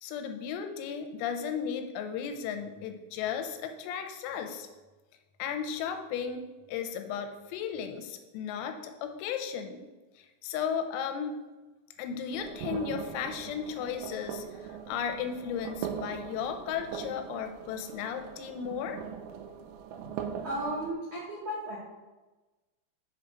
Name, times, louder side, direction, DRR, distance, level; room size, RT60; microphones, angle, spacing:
voice 1, 0.0-4.7 5.4-9.8 10.2-11.4 12.0-19.0, left 7 dB, 90° left, 6 dB, 3.4 m, -35 dB
sound 1, 12.3-20.9, right 8 dB, 90° right, 3.3 m, -41 dB
voice 2, 20.4-21.8, right 1 dB, 70° right, -9 dB, 1.5 m, -34 dB
7.8 x 3.8 x 5.9 m, 1.2 s
omnidirectional pair, 6.0 m